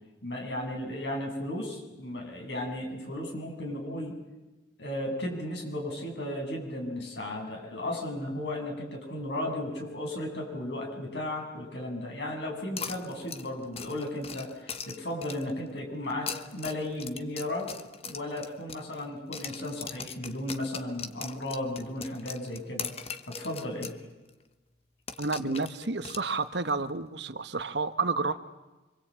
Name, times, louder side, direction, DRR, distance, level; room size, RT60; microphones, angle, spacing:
voice 1, 0.2-4.2 4.8-17.7 18.0-22.9 23.3-24.0 25.4-25.6, left 1 dB, 75° left, 1 dB, 7.9 m, -35 dB
sound 1, 12.8-15.6 16.1-19.1 19.3-24.0 24.3-24.4 25.1-26.7, left 6 dB, 35° left, 1.2 m, -40 dB
voice 2, 25.2-28.3, right 3 dB, 70° right, 11 dB, 1.3 m, -30 dB
26.5 x 25.0 x 8.9 m, 1.1 s
head